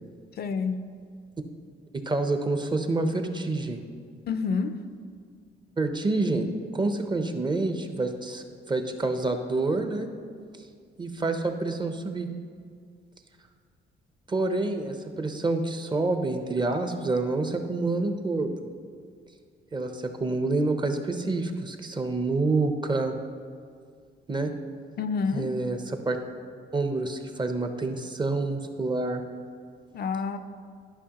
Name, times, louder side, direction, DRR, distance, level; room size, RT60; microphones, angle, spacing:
voice 1, 0.3-0.8 4.3-4.8 25.0-25.5 29.9-30.4, left 5 dB, 55° left, 9 dB, 0.5 m, -28 dB
voice 2, 2.1-3.8 5.8-10.1 11.0-12.3 14.3-18.5 19.7-23.1 24.3-24.5 25.3-26.2 26.7-29.2, right 2 dB, 25° right, 6 dB, 0.6 m, -27 dB
11.0 x 5.2 x 2.9 m, 2.1 s
cardioid pair, 90°, 20 cm